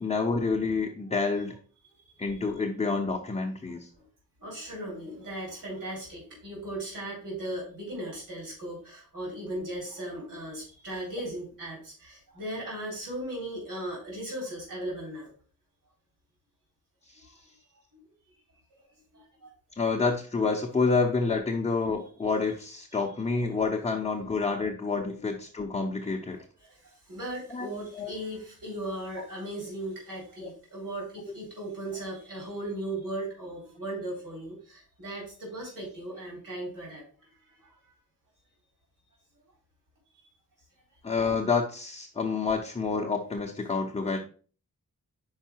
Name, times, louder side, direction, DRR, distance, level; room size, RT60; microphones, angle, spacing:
voice 1, 0.0-1.5 2.2-3.9 19.8-26.4 27.5-27.7 28.0-28.1 41.0-44.2, left 4 dB, 15° left, 0 dB, 0.7 m, -28 dB
voice 2, 4.4-15.3 17.2-17.3 19.1-19.5 21.5-21.9 26.3-26.4 27.1-37.0, right 1 dB, 65° right, -3 dB, 3.8 m, -37 dB
5.5 x 4.7 x 4.5 m, 0.39 s
wide cardioid pair, 175°, 35 cm